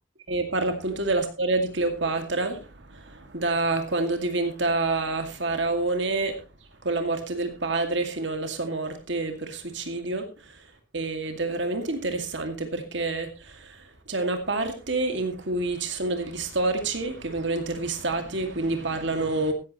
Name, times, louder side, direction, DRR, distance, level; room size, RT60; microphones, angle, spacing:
voice 1, 0.3-6.3 6.8-10.6 10.9-19.5, right 2 dB, 65° right, 2.3 m, -28 dB
15.5 x 12.5 x 3.1 m
head